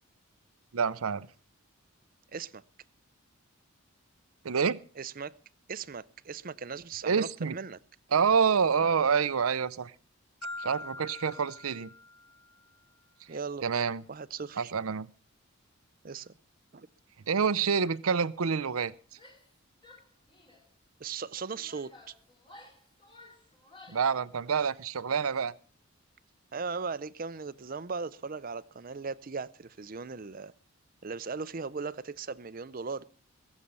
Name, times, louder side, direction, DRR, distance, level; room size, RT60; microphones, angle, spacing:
voice 1, 0.7-1.3 4.4-4.8 7.0-7.6 8.1-9.9 10.6-11.9 13.6-14.0 14.6-15.1 17.3-18.9 23.9-25.5, right 6 dB, 90° right, 0.6 m, -27 dB
voice 2, 2.3-2.6 5.0-5.3 5.7-7.8 13.3-13.6 14.1-14.7 16.0-16.4 16.7-16.9 21.0-22.1 24.6-24.7 26.5-30.5 31.0-33.0, right 5 dB, 40° right, 0.6 m, -38 dB
Marimba xylophone, 10.4-12.6, left 2 dB, 60° left, 3.0 m, -43 dB
Female speech woman speaking / Yell, 19.1-19.5 19.8-20.7 21.3-24.1, left 2 dB, 25° left, 2.3 m, -55 dB
22.0 x 7.3 x 5.4 m
head